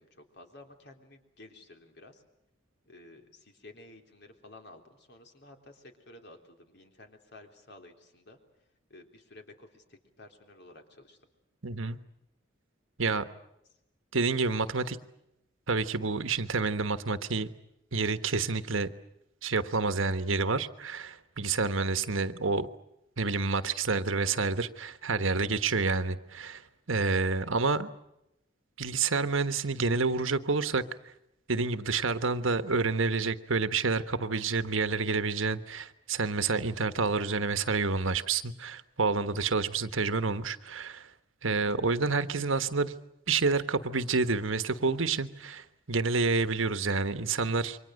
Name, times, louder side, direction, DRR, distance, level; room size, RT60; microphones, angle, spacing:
voice 1, 0.0-2.2 2.9-8.4 8.9-11.2, left 2 dB, 55° left, 4 dB, 3.7 m, -53 dB
voice 2, 11.6-12.0 13.0-13.3 14.1-15.0 15.7-17.5 17.9-18.9 19.4-22.7 23.2-27.9 28.8-30.8 31.5-41.1 41.4-42.9 43.3-47.8, right 4 dB, 75° right, 11 dB, 1.4 m, -28 dB
28.5 x 24.5 x 6.6 m, 0.85 s
head